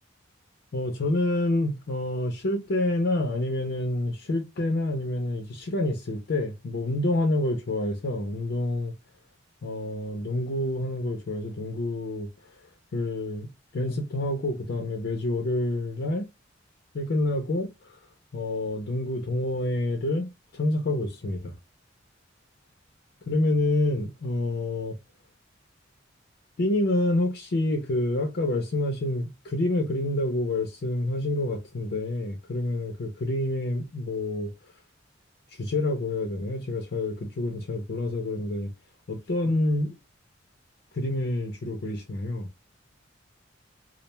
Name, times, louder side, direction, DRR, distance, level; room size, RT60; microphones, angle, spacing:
voice 1, 0.7-8.9 9.6-12.3 12.9-16.3 16.9-18.0 18.3-21.5 23.3-25.0 26.6-34.5 35.5-38.7 39.1-40.0 40.9-42.5, left 1 dB, 55° left, 0.5 m, -28 dB
2.3 x 2.1 x 3.0 m
head